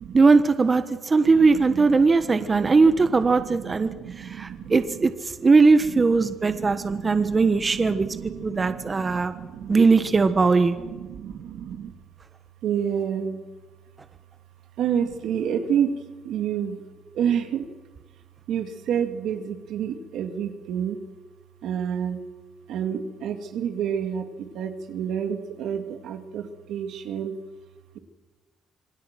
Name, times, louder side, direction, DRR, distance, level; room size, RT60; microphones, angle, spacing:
voice 1, 0.1-3.9 4.2-5.1 5.4-8.1 8.4-9.3 9.7-10.8, right 4 dB, 30° right, 9 dB, 1.3 m, -19 dB
voice 2, 1.3-2.0 2.3-5.0 5.9-10.3 10.8-11.9 12.6-13.4 14.8-16.8 17.1-17.7 18.5-21.0 21.6-22.2 22.7-27.3, right 8 dB, 80° right, 6 dB, 2.4 m, -30 dB
26.5 x 19.5 x 7.6 m, 1.2 s
cardioid pair, 90°, 0 cm